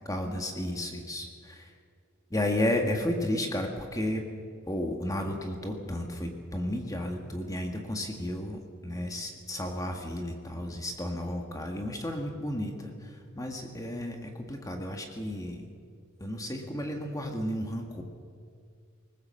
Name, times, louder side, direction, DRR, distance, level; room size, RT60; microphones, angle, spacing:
voice 1, 0.1-1.7 2.3-4.3 4.7-15.6 16.2-18.0, left 1 dB, 15° left, 3 dB, 1.6 m, -33 dB
20.5 x 18.5 x 7.6 m, 2.1 s
head